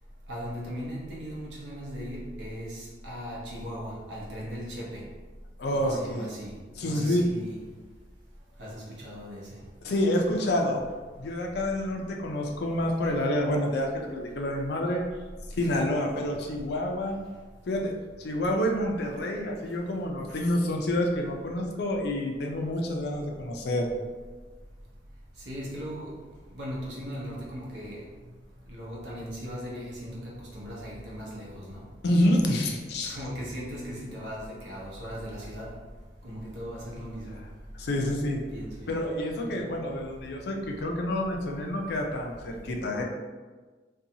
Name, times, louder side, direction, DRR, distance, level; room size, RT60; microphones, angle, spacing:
voice 1, 0.3-5.1 5.7-7.6 8.6-9.6 15.7-15.9 20.3-20.4 25.4-26.2 26.5-28.1 28.7-31.9 33.0-35.8 36.2-37.4 38.5-39.0 39.6-39.7, equal, 75° right, -5 dB, 0.8 m, -38 dB
voice 2, 5.6-6.3 6.8-7.2 9.8-10.8 11.2-15.0 15.6-17.2 17.7-17.9 18.2-23.9 32.0-33.2 37.8-38.4 38.9-43.0, left 1 dB, 65° left, 1 dB, 0.4 m, -28 dB
2.6 x 2.3 x 2.7 m, 1.4 s
head